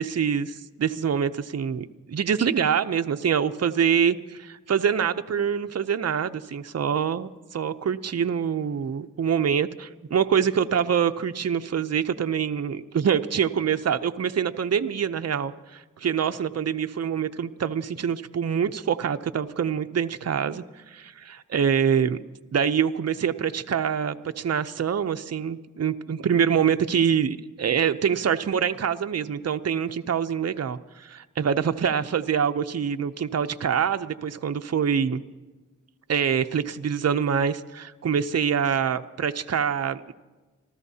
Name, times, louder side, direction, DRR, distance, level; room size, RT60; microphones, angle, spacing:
voice 1, 0.0-22.2 22.5-35.2 36.1-40.1, right 7 dB, 50° right, 10 dB, 0.6 m, -25 dB
27.0 x 14.0 x 2.8 m, 1.2 s
wide cardioid pair, 65°, 32 cm